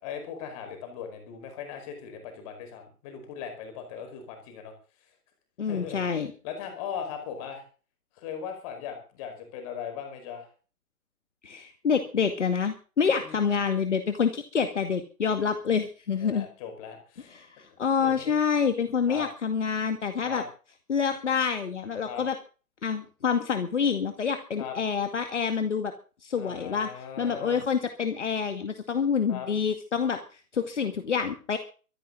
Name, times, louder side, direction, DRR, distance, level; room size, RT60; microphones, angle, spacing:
voice 1, 0.0-4.7 5.7-6.2 6.4-7.6 8.2-10.5 13.2-13.6 16.2-17.3 17.7-18.3 19.1-19.3 20.2-20.4 22.1-22.2 24.6-24.8 26.4-27.6 29.3-29.5, left 7 dB, 25° left, 5 dB, 5.0 m, -39 dB
voice 2, 5.6-6.3 11.4-16.5 17.3-20.4 20.9-22.4 22.8-25.9 26.2-26.9 27.2-31.6, left 6 dB, 50° left, 7 dB, 2.2 m, -27 dB
24.5 x 10.5 x 3.9 m, 0.36 s
figure-of-eight pair, 135°, 45 cm